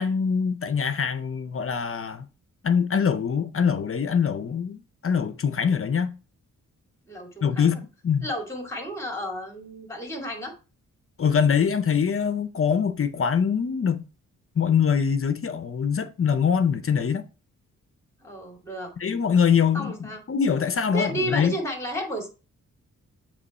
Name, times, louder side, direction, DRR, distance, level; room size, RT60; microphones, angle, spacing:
voice 1, 0.0-2.3 2.6-6.1 7.4-8.3 11.2-14.0 14.6-17.2 19.0-21.6, left 7 dB, 45° left, 0.6 m, -23 dB
voice 2, 7.1-7.8 8.2-10.5 18.2-18.9 19.7-20.2 20.9-22.3, equal, 10° left, 2.2 m, -32 dB
7.9 x 3.1 x 4.1 m
cardioid pair, 70°, 32 cm